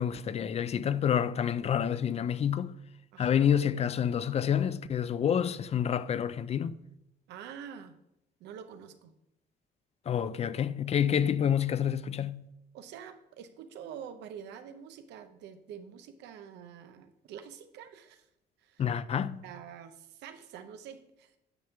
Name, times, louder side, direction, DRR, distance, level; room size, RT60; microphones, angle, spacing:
voice 1, 0.0-2.8 3.2-6.8 10.1-12.4 18.8-19.4, left 8 dB, 40° left, 0.4 m, -28 dB
voice 2, 3.1-3.4 7.3-7.9 8.4-9.1 12.7-18.3 18.6-18.8 19.4-21.3, right 8 dB, 85° right, 0.7 m, -46 dB
9.5 x 3.6 x 5.6 m
cardioid pair, 110°, 17 cm